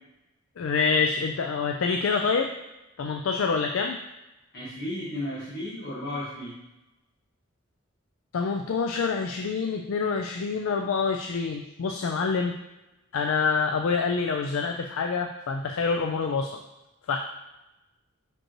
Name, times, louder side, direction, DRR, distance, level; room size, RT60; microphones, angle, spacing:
voice 1, 0.6-2.5 3.0-4.0 8.3-12.6 13.1-16.6 17.1-17.2, left 5 dB, 75° left, 4 dB, 0.4 m, -26 dB
voice 2, 4.5-6.5, left 1 dB, 50° left, -9 dB, 1.5 m, -34 dB
6.0 x 5.2 x 3.0 m, 0.98 s
head